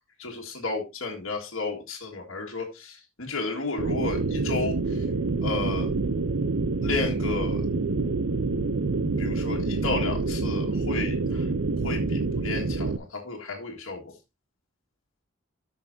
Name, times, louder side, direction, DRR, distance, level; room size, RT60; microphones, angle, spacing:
voice 1, 0.2-5.1 5.4-5.9 6.8-7.7 9.2-11.5 11.8-14.2, left 3 dB, 65° left, 1.8 m, -33 dB
sound 1, 3.8-13.0, right 3 dB, 65° right, 0.6 m, -27 dB
13.5 x 5.9 x 2.7 m
head